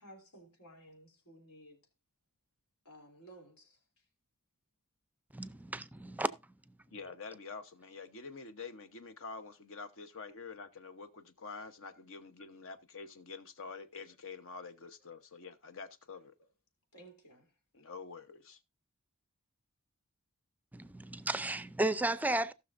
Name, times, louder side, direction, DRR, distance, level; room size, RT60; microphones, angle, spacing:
voice 1, 0.0-1.8 2.8-3.8 16.9-17.5, right 1 dB, 80° left, 3.2 m, -56 dB
voice 2, 5.3-6.3 20.7-22.5, right 2 dB, 5° right, 0.4 m, -33 dB
voice 3, 6.9-16.3 17.7-18.6, left 4 dB, 65° left, 1.0 m, -47 dB
17.5 x 6.2 x 2.6 m
head